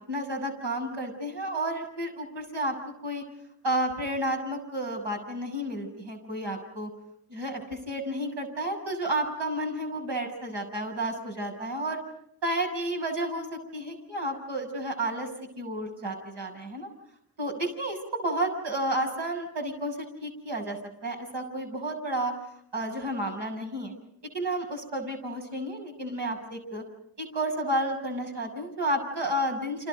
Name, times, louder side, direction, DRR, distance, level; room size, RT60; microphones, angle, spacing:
voice 1, 0.1-3.2 3.6-6.9 7.3-12.0 12.4-15.3 15.6-16.9 17.4-20.8 21.0-22.3 22.7-23.9 24.3-26.8 27.2-29.9, right 1 dB, 80° right, 1 dB, 7.0 m, -31 dB
29.5 x 27.0 x 5.3 m, 0.73 s
cardioid pair, 50°, 42 cm